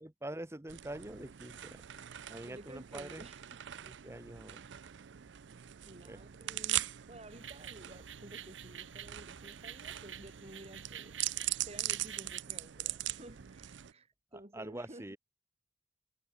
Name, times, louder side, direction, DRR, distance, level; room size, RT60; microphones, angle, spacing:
voice 1, 0.0-1.8 2.3-3.2 3.8-4.6 6.0-6.2 14.3-15.2, right 1 dB, 15° right, 0.9 m, -45 dB
sound 1, 0.7-13.9, right 14 dB, 70° right, 0.5 m, -41 dB
voice 2, 1.7-2.1 2.4-3.6 5.8-11.2 11.7-15.2, right 1 dB, 35° right, 2.5 m, -53 dB
sound 2, 7.3-12.4, right 9 dB, 85° right, 4.7 m, -49 dB
head